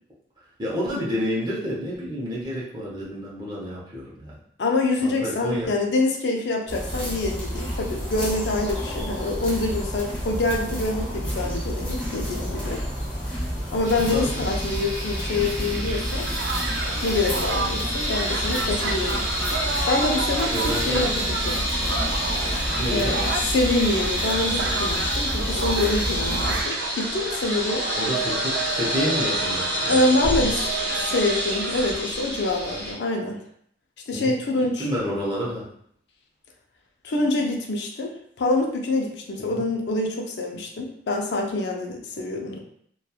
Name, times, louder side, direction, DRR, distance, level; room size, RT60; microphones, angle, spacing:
voice 1, 0.6-4.4 5.0-5.7 14.1-14.5 20.5-21.1 22.7-23.2 28.0-30.0 34.1-34.3 34.8-35.7 39.4-39.6, equal, 25° right, -6 dB, 0.7 m, -29 dB
voice 2, 4.6-12.8 13.7-16.3 17.0-19.2 19.9-21.7 22.9-27.8 29.9-30.8 31.1-33.4 34.1-34.9 37.0-42.6, left 2 dB, 70° left, 1 dB, 0.4 m, -26 dB
sound 1, 6.7-26.6, equal, 10° left, 0.8 m, -30 dB
sound 2, 13.8-32.9, equal, 45° left, 1.2 m, -29 dB
Crowd, 14.7-32.1, right 4 dB, 75° right, 0.3 m, -31 dB
2.8 x 2.2 x 2.3 m, 0.67 s
head